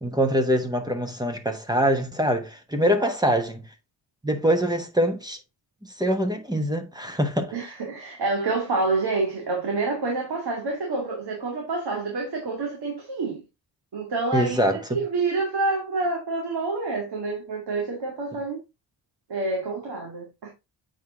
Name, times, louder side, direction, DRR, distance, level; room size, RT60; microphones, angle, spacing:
voice 1, 0.0-3.6 4.2-5.4 6.0-7.5 14.3-15.0, equal, 10° right, 1.1 m, -24 dB
voice 2, 7.5-13.4 13.9-18.6 19.3-20.5, right 3 dB, 55° right, 2.3 m, -28 dB
7.9 x 4.7 x 3.8 m
wide cardioid pair, 165°, 46 cm